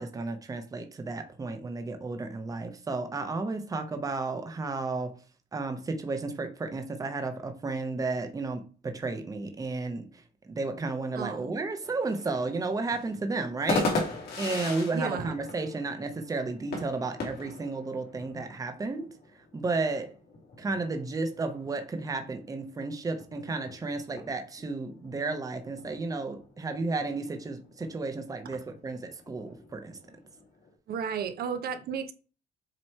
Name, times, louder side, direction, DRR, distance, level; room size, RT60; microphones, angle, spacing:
voice 1, 0.0-5.2 5.5-14.1 14.4-20.2 20.6-30.0, right 3 dB, 20° right, 0.8 m, -33 dB
voice 2, 11.2-11.5 14.9-15.3 30.9-32.1, right 6 dB, 60° right, 0.8 m, -33 dB
sound 1, 11.8-30.7, left 3 dB, 65° left, 2.8 m, -39 dB
7.6 x 3.1 x 4.3 m
cardioid pair, 140°, 18 cm